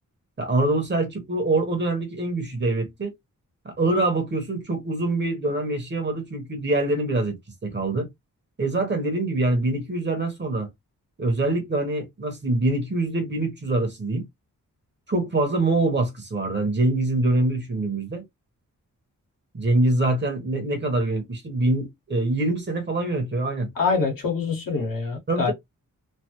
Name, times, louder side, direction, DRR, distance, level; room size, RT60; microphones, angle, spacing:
voice 1, 0.4-3.1 3.6-7.4 7.6-8.1 8.6-10.7 11.2-14.3 15.1-18.2 19.5-23.7 25.3-25.5, right 2 dB, 35° right, 1.0 m, -24 dB
voice 2, 23.7-25.5, left 5 dB, 80° left, 1.4 m, -25 dB
3.2 x 2.0 x 2.9 m
wide cardioid pair, 140°, 33 cm